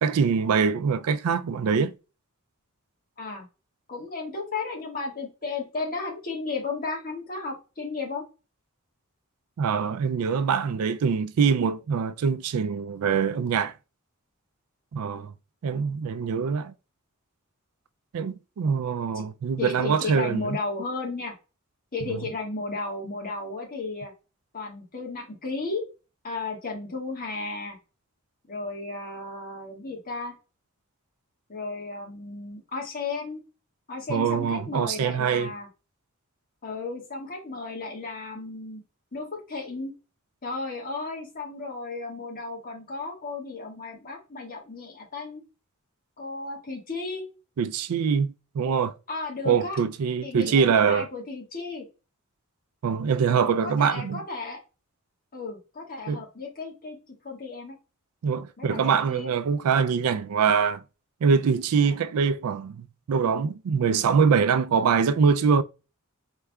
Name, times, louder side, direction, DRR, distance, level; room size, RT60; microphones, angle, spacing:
voice 1, 0.0-1.9 9.6-13.7 14.9-15.3 15.6-16.7 18.1-20.6 22.1-22.2 34.1-35.5 47.6-48.9 49.5-51.1 52.8-54.2 56.1-56.2 58.2-60.8 61.2-65.6, right 6 dB, 85° right, 0.4 m, -24 dB
voice 2, 3.9-8.3 19.1-19.2 19.6-21.3 21.9-24.1 24.5-25.8 26.2-27.8 28.5-30.3 31.5-33.4 33.9-35.7 36.6-38.8 39.1-39.9 40.4-45.4 46.2-47.2 49.1-49.8 50.2-51.8 53.6-54.6 55.3-57.0 57.2-57.8 58.6-59.3 61.8-62.0, left 3 dB, 40° left, 1.6 m, -34 dB
4.6 x 3.3 x 2.3 m
head